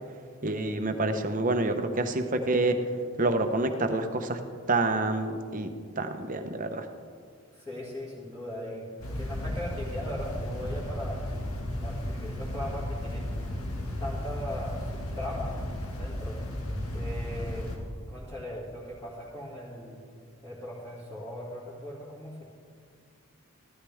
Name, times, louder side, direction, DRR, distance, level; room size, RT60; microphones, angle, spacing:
voice 1, 0.4-2.8 3.2-4.4 4.7-5.7 6.0-6.9, right 2 dB, 35° right, 7 dB, 0.8 m, -27 dB
voice 2, 7.5-8.9 9.1-11.2 11.8-13.3 14.0-15.6 15.9-16.4 16.9-17.7 18.1-20.0 20.4-22.4, left 1 dB, 10° left, -10 dB, 2.2 m, -39 dB
sound 1, 9.0-17.8, left 1 dB, 75° left, 2.0 m, -34 dB
15.5 x 13.0 x 3.6 m, 2.1 s
head